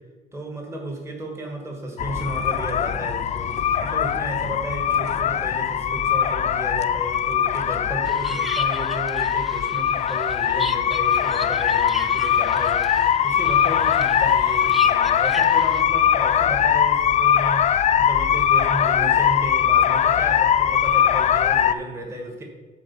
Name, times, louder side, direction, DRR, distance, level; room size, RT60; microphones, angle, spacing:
voice 1, 0.3-22.4, right 1 dB, 15° right, 1 dB, 1.8 m, -34 dB
sound 1, 2.0-21.7, left 9 dB, 40° left, 0.4 m, -21 dB
sound 2, 8.0-15.8, left 1 dB, ahead, 0.6 m, -37 dB
8.4 x 4.3 x 7.2 m, 1.3 s
cardioid pair, 110°, 17 cm